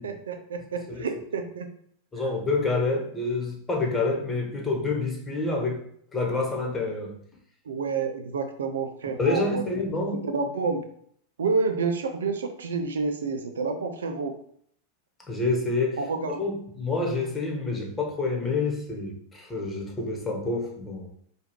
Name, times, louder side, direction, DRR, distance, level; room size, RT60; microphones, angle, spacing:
voice 1, 0.0-1.7 7.7-9.6 10.3-10.8 11.4-14.4 16.0-16.4, right 4 dB, 80° right, 7 dB, 0.4 m, -29 dB
voice 2, 2.1-5.8 6.1-7.2 9.2-10.3 15.3-16.0 16.4-21.1, left 3 dB, 15° left, 0 dB, 1.3 m, -28 dB
4.7 x 2.4 x 3.1 m, 0.65 s
hypercardioid pair, 95°, 0 cm